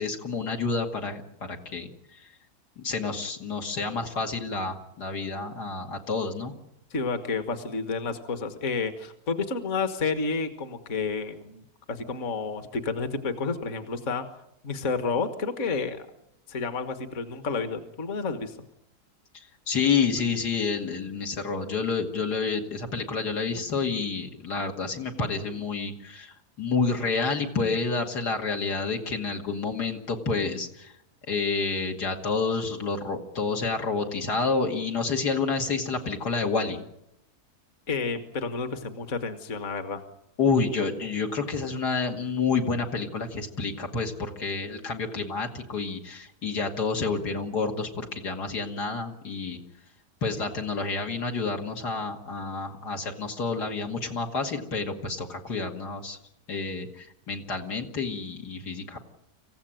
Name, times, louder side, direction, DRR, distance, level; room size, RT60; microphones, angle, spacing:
voice 1, 0.0-1.9 2.8-6.5 19.7-30.9 31.3-36.8 40.4-49.6 50.2-56.2 56.5-59.0, left 4 dB, 85° left, 2 dB, 2.8 m, -29 dB
voice 2, 6.9-14.3 14.6-16.1 16.5-18.5 37.9-40.0, left 4 dB, 50° left, 9 dB, 1.7 m, -30 dB
26.5 x 15.5 x 9.0 m, 0.82 s
omnidirectional pair, 1.7 m